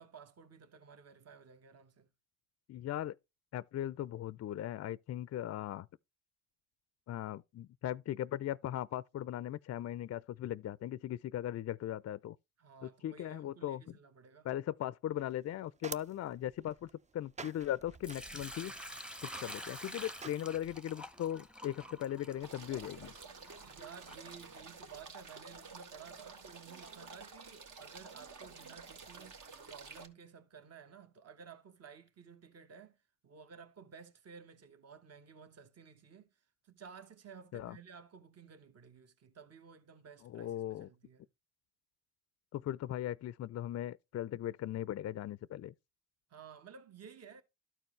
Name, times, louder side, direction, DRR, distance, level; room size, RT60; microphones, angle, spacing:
voice 1, 0.0-2.1 12.6-14.5 23.6-29.4 29.7-33.0 33.2-41.3 46.3-47.4, right 6 dB, 45° right, 1.2 m, -54 dB
voice 2, 2.7-3.2 3.5-5.9 7.1-12.4 12.8-14.0 14.4-18.7 19.2-23.1 37.5-37.8 40.2-40.9 42.5-45.7, left 12 dB, 50° left, 0.4 m, -38 dB
sound 1, 15.2-20.8, right 4 dB, 20° right, 0.4 m, -51 dB
Sink (filling or washing) / Liquid, 18.0-25.0, equal, 5° right, 0.8 m, -48 dB
sound 2, 22.4-30.1, right 4 dB, 60° right, 1.7 m, -51 dB
12.5 x 4.5 x 3.2 m
supercardioid pair, 65°, 34 cm